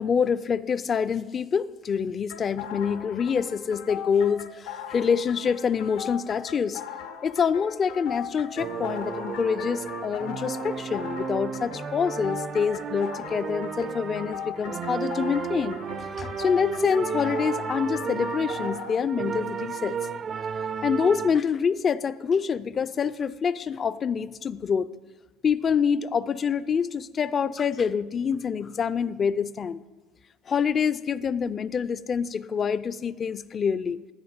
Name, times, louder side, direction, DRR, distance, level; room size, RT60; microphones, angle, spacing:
voice 1, 0.0-6.8 7.2-15.8 16.2-20.0 20.8-24.9 25.4-29.8 30.5-34.0, left 6 dB, 35° left, 16 dB, 0.3 m, -26 dB
sound 1, 2.3-19.0, left 8 dB, 85° left, 0.8 m, -39 dB
sound 2, 8.6-21.4, right 6 dB, 40° right, 0.4 m, -33 dB
11.0 x 5.2 x 8.1 m, 1.2 s
supercardioid pair, 105°, 0 cm